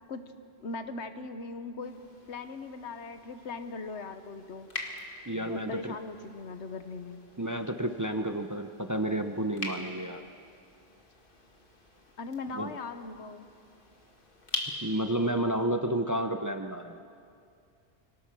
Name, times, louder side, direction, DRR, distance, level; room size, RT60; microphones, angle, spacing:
voice 1, 0.6-4.7 5.5-7.3 12.2-13.5, left 3 dB, 80° left, 9 dB, 1.3 m, -39 dB
sound 1, 1.8-15.3, left 2 dB, 50° left, 2.1 m, -44 dB
voice 2, 5.3-6.0 7.4-10.2 12.5-12.7 14.8-17.0, right 1 dB, 20° right, 7 dB, 0.6 m, -31 dB
25.5 x 18.0 x 6.1 m, 2.4 s
omnidirectional pair, 1.1 m